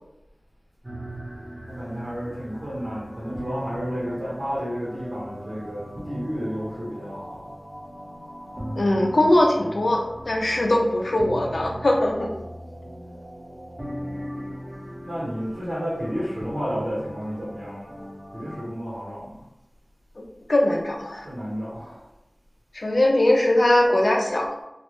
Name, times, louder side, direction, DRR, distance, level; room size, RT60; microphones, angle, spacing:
sound 1, 0.8-18.7, equal, 25° right, 0.7 m, -38 dB
voice 1, 1.7-7.4 15.0-18.1 18.3-19.5 21.2-22.1, equal, 90° right, -8 dB, 1.0 m, -31 dB
voice 2, 8.7-12.3 20.5-21.3 22.7-24.5, left 1 dB, 75° left, 0 dB, 0.5 m, -21 dB
2.4 x 2.0 x 3.0 m, 0.88 s
wide cardioid pair, 45°, 0 cm